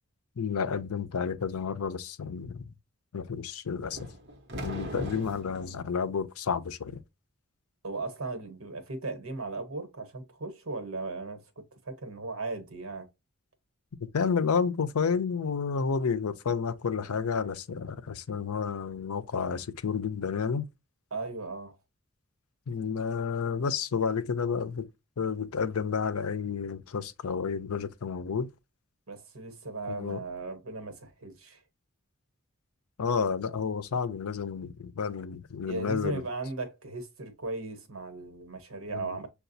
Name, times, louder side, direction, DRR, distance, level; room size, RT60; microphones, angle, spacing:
voice 1, 0.4-2.7 3.1-4.0 4.6-7.0 14.0-20.6 22.7-24.9 25.2-28.5 29.9-30.2 33.0-36.2 38.9-39.1, left 6 dB, 90° left, 0.5 m, -30 dB
sound 1, 3.9-5.7, equal, 50° right, 1.0 m, -38 dB
voice 2, 7.8-13.1 21.1-21.8 29.1-31.6 35.7-39.3, right 3 dB, 75° right, 1.2 m, -37 dB
6.7 x 2.3 x 2.6 m
head